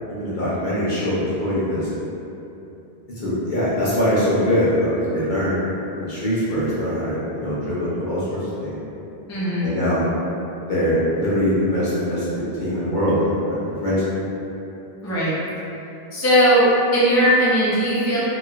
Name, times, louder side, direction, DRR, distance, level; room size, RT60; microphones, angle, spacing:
voice 1, 0.1-1.9 3.2-5.6 5.9-8.8 9.6-10.1 10.7-13.4 13.8-14.0, equal, 50° left, -10 dB, 1.0 m, -22 dB
voice 2, 9.3-9.7 15.0-15.3 16.1-18.2, equal, 20° left, -11 dB, 0.6 m, -18 dB
3.0 x 2.9 x 2.4 m, 2.9 s
omnidirectional pair, 1.1 m